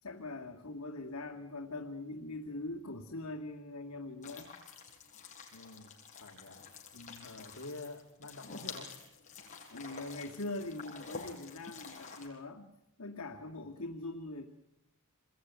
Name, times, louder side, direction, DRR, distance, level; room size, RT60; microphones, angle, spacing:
voice 1, 0.0-4.5 6.9-7.3 9.7-12.7 13.0-14.5, left 2 dB, 85° left, 1 dB, 2.2 m, -42 dB
sound 1, 4.2-12.3, left 5 dB, 35° left, 6.0 m, -49 dB
voice 2, 5.5-5.9 6.2-6.6 7.2-8.9, left 2 dB, 65° left, 1 dB, 2.5 m, -47 dB
27.0 x 22.0 x 9.5 m, 0.93 s
head